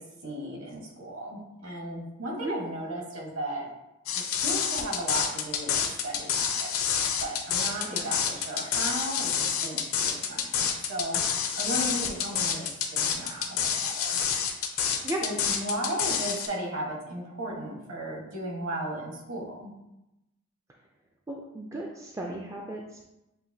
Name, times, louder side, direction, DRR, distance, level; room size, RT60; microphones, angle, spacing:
voice 1, 0.2-3.7 4.1-6.7 7.2-14.2 15.2-19.7, right 1 dB, 65° right, -1 dB, 1.2 m, -35 dB
sound 1, 4.1-16.5, left 7 dB, 75° left, 0.6 m, -28 dB
voice 2, 21.3-23.0, right 1 dB, 15° right, -1 dB, 0.3 m, -35 dB
7.4 x 2.6 x 2.7 m, 0.92 s
head